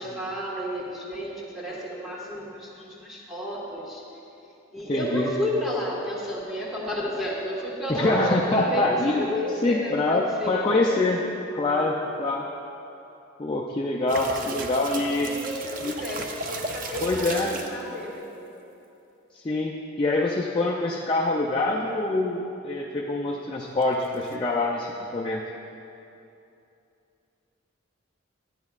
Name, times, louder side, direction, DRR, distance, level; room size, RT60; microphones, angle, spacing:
voice 1, 0.0-4.0 4.7-11.1 14.3-14.6 15.1-18.5, equal, ahead, -6 dB, 1.4 m, -32 dB
voice 2, 4.9-5.3 7.9-9.3 9.6-11.2 11.5-12.4 13.4-15.3 15.8-15.9 17.0-17.5 19.4-25.4, left 2 dB, 25° left, -3 dB, 0.4 m, -25 dB
sound 1, 14.1-17.8 23.8-24.4, right 3 dB, 40° right, 0.5 m, -35 dB
12.0 x 9.5 x 2.4 m, 2.8 s
head